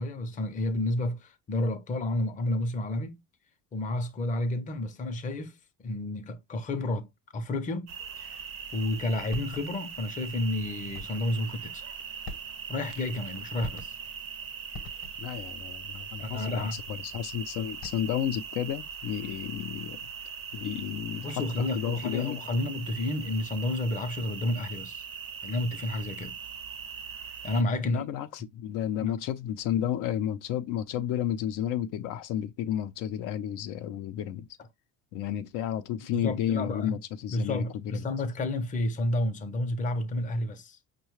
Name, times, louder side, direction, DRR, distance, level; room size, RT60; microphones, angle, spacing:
voice 1, 0.0-3.2 3.7-5.6 5.8-7.1 7.3-8.4 8.7-11.8 12.7-13.9 16.2-16.8 21.2-25.0 25.4-26.4 27.4-28.0 29.0-29.2 36.1-37.0 37.3-40.8, left 1 dB, 25° left, 0.5 m, -31 dB
sound 1, 7.9-27.6, right 7 dB, 45° right, 0.5 m, -41 dB
sound 2, 9.3-10.0 10.9-11.3 12.2-12.9 13.6-14.2 14.7-15.4 17.6-18.3, left 2 dB, 40° left, 0.9 m, -43 dB
voice 2, 15.2-20.1 20.5-22.4 27.8-34.5 35.1-38.1, left 10 dB, 80° left, 0.6 m, -32 dB
5.5 x 2.2 x 3.0 m
cardioid pair, 165°, 31 cm